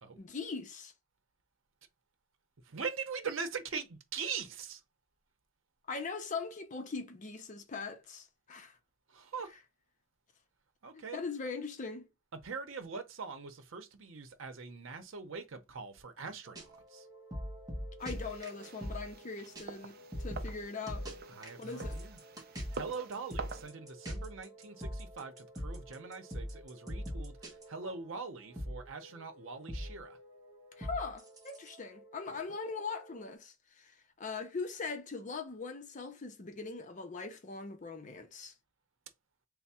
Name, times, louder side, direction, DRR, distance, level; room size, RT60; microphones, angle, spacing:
voice 1, 0.2-0.9 5.9-8.8 10.9-12.1 18.0-21.1 21.6-22.0 30.8-38.5, left 4 dB, 40° left, 0.5 m, -41 dB
voice 2, 2.6-4.8 9.1-9.5 10.8-11.2 12.4-17.1 21.3-22.2 22.7-30.2, right 5 dB, 85° right, 0.7 m, -42 dB
sound 1, 16.5-19.3 19.5-19.6 19.9-28.3 28.6-33.3, equal, 20° right, 1.0 m, -43 dB
sound 2, 18.0-23.7, right 4 dB, 50° right, 0.4 m, -47 dB
3.4 x 2.1 x 4.1 m
head